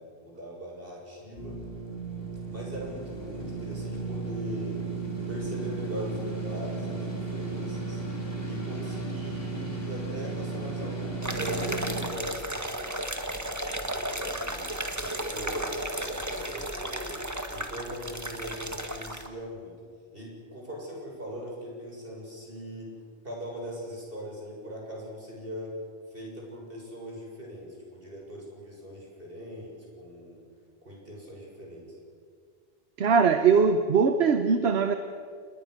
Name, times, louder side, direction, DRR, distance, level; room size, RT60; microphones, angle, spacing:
voice 1, 0.0-1.6 2.5-4.8 5.3-8.0 8.4-13.2 13.6-17.2 17.5-19.8 20.1-25.7 26.1-30.4 30.8-32.0, equal, 60° right, -2 dB, 7.5 m, -41 dB
sound 1, 1.4-12.1, right 3 dB, 60° left, 3.6 m, -34 dB
sound 2, 11.2-19.3, right 1 dB, 15° right, 1.7 m, -34 dB
voice 2, 33.0-34.9, right 5 dB, 85° right, 8 dB, 1.3 m, -21 dB
28.0 x 21.0 x 6.6 m, 2.1 s
omnidirectional pair, 1.1 m